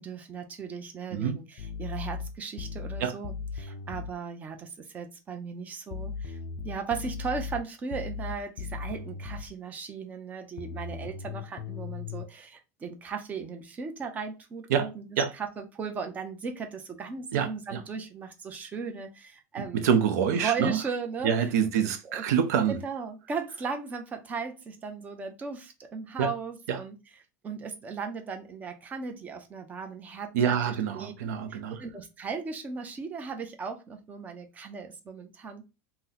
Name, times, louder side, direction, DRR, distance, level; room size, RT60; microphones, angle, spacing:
voice 1, 0.0-6.4 6.6-15.1 15.3-19.9 20.4-22.2 22.7-27.0 27.4-31.1 31.5-35.6, right 5 dB, 20° right, 0.5 m, -37 dB
sound 1, 1.6-4.2 5.9-9.5 10.6-12.2, left 5 dB, 50° left, 0.3 m, -37 dB
voice 2, 17.3-17.8 19.7-20.8 21.2-22.8 26.2-26.3 26.7-26.8 30.3-31.8, right 7 dB, 80° right, 0.6 m, -26 dB
2.7 x 2.0 x 3.8 m
supercardioid pair, 155°, 9 cm